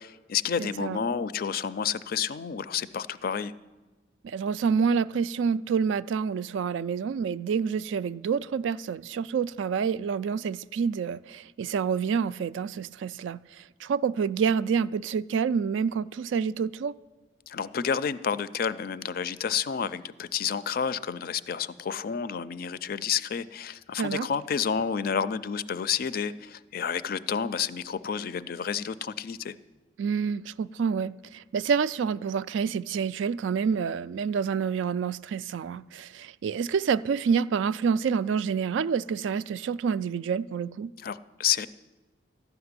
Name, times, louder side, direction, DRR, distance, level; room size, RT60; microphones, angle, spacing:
voice 1, 0.0-3.5 17.5-29.6 41.0-41.7, left 7 dB, 50° left, 0.4 m, -30 dB
voice 2, 0.6-1.0 4.2-17.0 24.0-24.3 30.0-40.9, right 6 dB, 75° right, 0.3 m, -28 dB
13.0 x 5.9 x 9.6 m
head